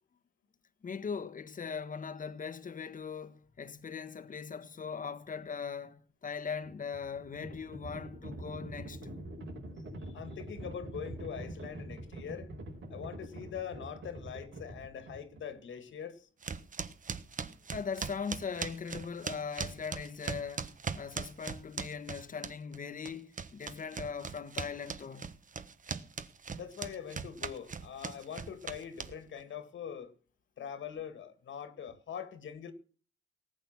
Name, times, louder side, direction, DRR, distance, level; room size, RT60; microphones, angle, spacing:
voice 1, 0.8-9.1 17.7-25.3, left 6 dB, 45° left, 1.3 m, -40 dB
Livestock farm animals working animals, 6.6-15.6, right 1 dB, 90° right, 6.0 m, -45 dB
voice 2, 10.1-12.5 12.9-16.3 26.5-30.1 30.6-32.7, left 8 dB, 85° left, 2.2 m, -43 dB
sound 1, 16.4-22.8 23.0-29.4, right 5 dB, 45° right, 1.3 m, -39 dB
19.0 x 8.9 x 6.0 m
wide cardioid pair, 120°, 19 cm